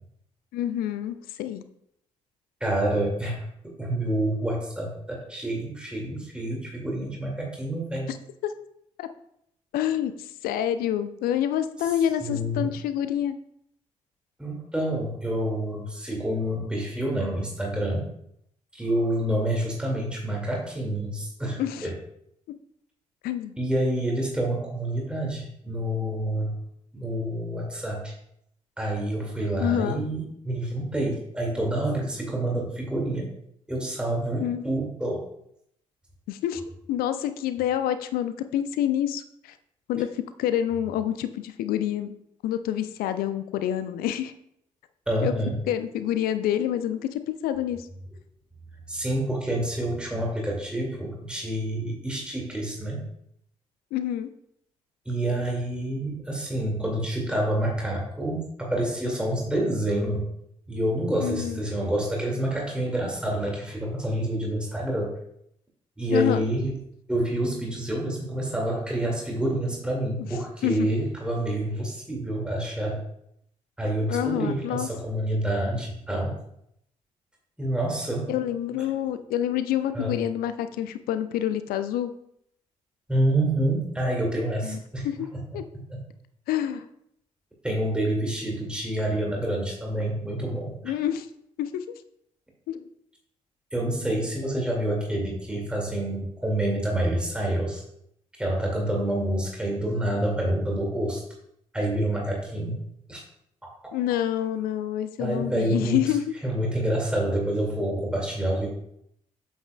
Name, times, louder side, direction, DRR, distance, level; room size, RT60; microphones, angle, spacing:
voice 1, 0.5-1.6 8.1-8.2 8.4-8.5 9.0-9.1 9.7-13.4 21.6-21.9 22.5-22.6 23.2-23.5 29.6-30.0 34.4-34.6 36.3-36.6 36.9-39.5 39.9-42.1 42.4-44.3 45.2-45.3 45.7-47.9 53.9-54.3 61.2-61.6 66.1-66.4 70.2-70.3 70.6-70.9 74.1-74.9 78.3-82.1 84.6-84.8 85.0-85.3 85.5-85.6 86.5-86.8 90.8-91.3 91.6-91.8 92.7-92.8 103.9-106.3, left 11 dB, 65° left, 11 dB, 0.5 m, -27 dB
voice 2, 2.6-8.1 12.2-12.7 14.4-18.0 18.7-21.9 23.6-26.6 26.9-28.1 28.8-33.3 33.7-35.2 45.1-45.6 48.9-53.1 55.1-60.3 60.7-65.1 66.0-66.7 67.1-73.0 73.8-76.4 77.6-78.3 79.9-80.1 83.1-85.1 85.9-86.0 87.6-90.7 93.7-97.8 98.4-101.2 101.7-102.8 103.1-103.2 105.2-106.2 106.4-108.7, right 1 dB, 5° right, -2 dB, 2.2 m, -28 dB
8.3 x 7.2 x 2.3 m, 0.73 s
figure-of-eight pair, 40°, 17 cm